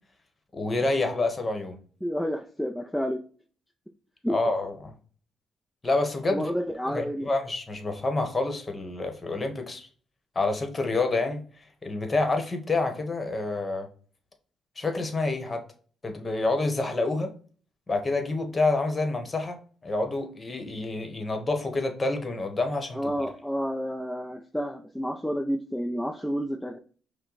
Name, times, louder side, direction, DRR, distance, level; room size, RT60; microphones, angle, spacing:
voice 1, 0.5-1.8 4.3-4.9 5.8-6.5 6.8-9.9 10.3-11.4 11.8-13.9 14.8-15.6 16.0-17.3 17.9-23.1, left 2 dB, 30° left, 1.2 m, -28 dB
voice 2, 2.0-3.2 4.2-4.3 6.3-7.3 22.9-26.8, equal, 5° left, 0.5 m, -30 dB
5.5 x 2.2 x 4.0 m
cardioid pair, 80°, 0 cm